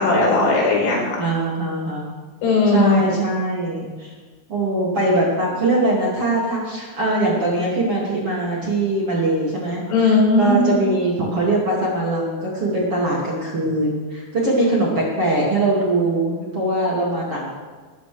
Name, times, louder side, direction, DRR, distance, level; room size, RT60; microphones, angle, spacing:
voice 1, 0.0-1.2 2.4-2.9 9.9-10.7, left 3 dB, 75° left, -2 dB, 7.3 m, -17 dB
voice 2, 1.2-2.0 2.7-4.1 4.5-17.5, right 2 dB, 35° right, -5 dB, 2.8 m, -22 dB
20.0 x 14.0 x 3.5 m, 1.4 s
omnidirectional pair, 5.5 m